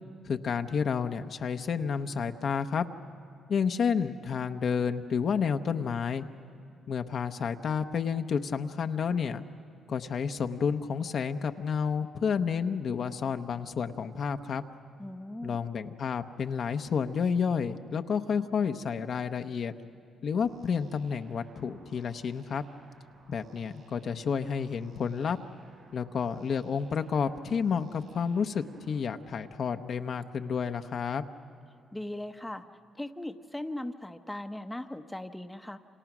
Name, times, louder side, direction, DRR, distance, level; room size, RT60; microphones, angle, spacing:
voice 1, 0.2-2.9 3.5-6.3 6.9-9.4 9.9-14.6 15.4-19.7 20.2-22.6 23.3-25.4 25.9-31.2, left 6 dB, 55° left, 7 dB, 0.8 m, -30 dB
voice 2, 15.0-15.6 31.9-32.6 32.9-35.8, left 1 dB, 10° left, 7 dB, 0.8 m, -38 dB
sound 1, 20.4-29.0, right 3 dB, 65° right, 6.6 m, -60 dB
29.0 x 27.0 x 6.1 m, 2.3 s
cardioid pair, 90°, 0 cm